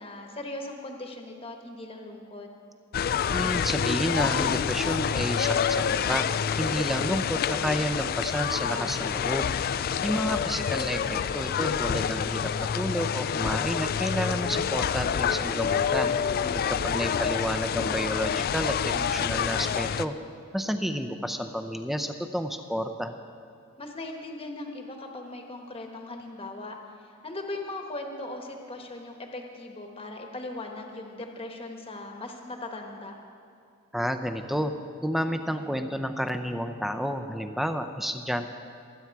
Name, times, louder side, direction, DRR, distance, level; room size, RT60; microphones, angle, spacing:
voice 1, 0.0-2.5 8.7-9.1 16.4-16.9 23.8-33.1, left 2 dB, 25° left, 3 dB, 1.1 m, -39 dB
sound 1, 2.9-20.1, left 7 dB, 45° left, 0.3 m, -27 dB
voice 2, 3.3-6.3 6.6-9.5 10.0-16.2 16.8-20.1 20.5-23.1 33.9-34.7 35.0-38.5, equal, ahead, 8 dB, 0.5 m, -30 dB
23.5 x 8.7 x 4.7 m, 2.4 s
head